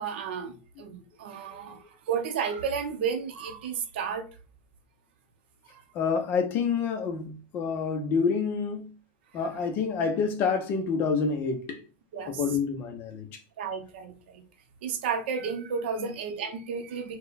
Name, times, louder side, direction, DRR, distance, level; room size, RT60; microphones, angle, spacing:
voice 1, 0.0-4.3 5.7-5.8 12.1-12.6 13.6-14.4 14.8-17.2, right 6 dB, 85° right, 0.9 m, -32 dB
voice 2, 1.5-1.9 5.9-8.9 9.3-11.8 12.3-13.4 16.0-16.1, left 5 dB, 35° left, 0.9 m, -28 dB
4.4 x 2.3 x 4.1 m
supercardioid pair, 155°, 6 cm